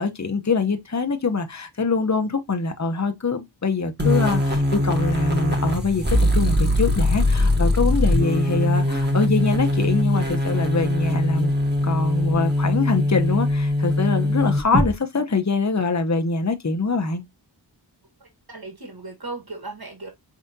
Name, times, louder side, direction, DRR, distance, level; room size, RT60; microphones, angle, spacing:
voice 1, 0.0-11.5 11.8-17.2, left 4 dB, 40° left, 0.8 m, -24 dB
sound 1, 4.0-14.9, left 1 dB, 25° right, 1.4 m, -21 dB
voice 2, 18.2-20.1, right 3 dB, 55° right, 1.8 m, -37 dB
4.9 x 3.7 x 2.7 m
wide cardioid pair, 40°, 44 cm